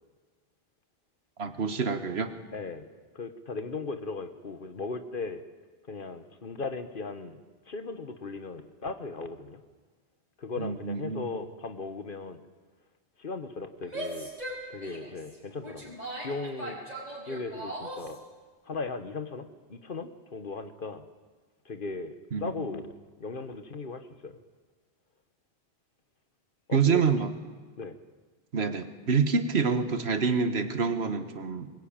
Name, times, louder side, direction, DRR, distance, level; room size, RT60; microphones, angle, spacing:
voice 1, 1.4-2.3 10.6-11.4 22.3-22.7 26.7-27.3 28.5-31.7, right 5 dB, 80° right, 9 dB, 1.6 m, -27 dB
voice 2, 2.5-2.9 3.1-5.4 5.9-7.4 7.7-9.6 10.4-12.4 13.2-14.3 14.7-16.8 17.3-18.2 18.7-21.0 21.6-22.1 22.4-22.9 23.2-24.4 26.7-27.0 27.8-28.0, left 4 dB, 55° left, 10 dB, 1.5 m, -37 dB
Female speech woman speaking / Yell, 13.8-18.2, right 1 dB, 40° right, 5.2 m, -39 dB
22.5 x 21.5 x 8.9 m, 1.4 s
omnidirectional pair, 1.1 m